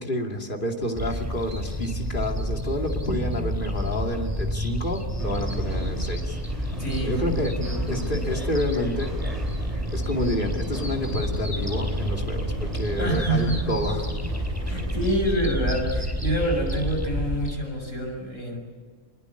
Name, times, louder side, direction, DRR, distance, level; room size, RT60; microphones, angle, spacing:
voice 1, 0.0-6.4 7.0-7.5 7.9-9.1 9.9-14.0, left 1 dB, 40° left, 2 dB, 2.8 m, -29 dB
sound 1, 0.9-17.5, equal, 10° right, 4.7 m, -29 dB
sound 2, 5.2-15.1, equal, 30° right, 4.3 m, -37 dB
voice 2, 6.8-8.3 13.0-13.7 14.7-18.6, right 1 dB, 80° left, 1 dB, 6.9 m, -27 dB
23.5 x 22.0 x 8.6 m, 1.5 s
omnidirectional pair, 1.3 m